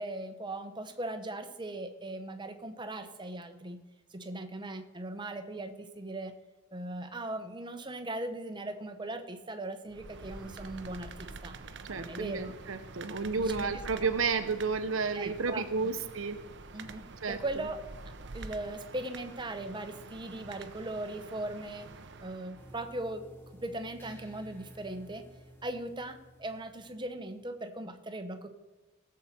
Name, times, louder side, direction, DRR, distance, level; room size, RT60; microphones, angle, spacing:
voice 1, 0.0-3.8 4.1-6.3 6.7-11.6 11.9-12.5 13.4-14.1 15.1-15.9 16.7-17.8 18.3-21.9 22.2-23.3 23.6-25.2 25.6-28.5, right 2 dB, 25° right, 7 dB, 1.0 m, -39 dB
sound 1, 9.9-22.9, right 3 dB, 60° right, 0.8 m, -47 dB
voice 2, 11.9-16.4 17.2-17.7, right 4 dB, 85° right, 8 dB, 1.0 m, -32 dB
sound 2, 22.6-27.7, equal, 10° left, 1.4 m, -54 dB
18.0 x 7.5 x 4.4 m, 1.2 s
head